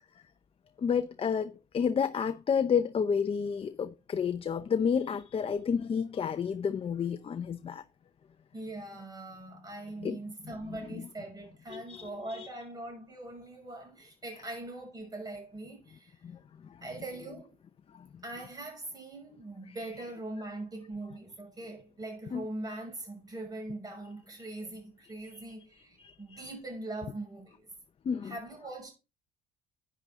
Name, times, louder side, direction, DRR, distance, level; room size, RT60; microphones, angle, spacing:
voice 1, 0.8-7.8 10.0-10.2 10.9-11.1 11.7-12.5 16.2-16.8 17.9-18.1 22.3-22.5 25.3-25.4 26.0-26.5 28.0-28.3, left 7 dB, 35° left, 0.7 m, -31 dB
voice 2, 8.5-16.2 16.8-17.5 18.2-27.7 28.2-28.9, right 2 dB, 25° right, 6.5 m, -42 dB
10.5 x 9.9 x 3.7 m
cardioid pair, 110°, 17 cm